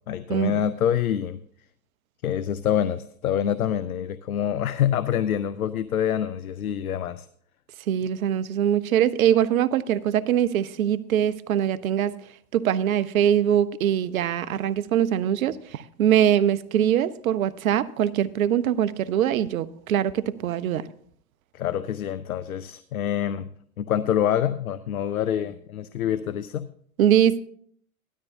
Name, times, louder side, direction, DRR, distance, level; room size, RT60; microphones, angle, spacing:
voice 1, 0.0-1.4 2.2-7.3 21.5-23.5 23.8-26.7, left 9 dB, 85° left, 0.6 m, -26 dB
voice 2, 7.9-12.1 12.5-20.8 27.0-27.4, right 10 dB, 75° right, 0.8 m, -22 dB
16.5 x 12.5 x 2.7 m
hypercardioid pair, 95°, 42 cm